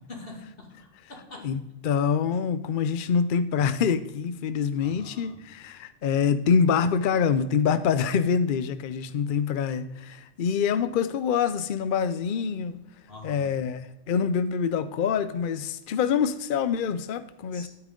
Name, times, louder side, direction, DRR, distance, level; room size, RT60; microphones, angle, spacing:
voice 1, 0.1-1.5 2.3-2.4 4.8-5.4 13.1-13.5 17.5-17.7, left 2 dB, 45° left, 1 dB, 2.5 m, -44 dB
voice 2, 1.4-17.7, left 6 dB, 60° left, 12 dB, 0.5 m, -26 dB
12.5 x 8.9 x 3.7 m, 0.92 s
omnidirectional pair, 1.4 m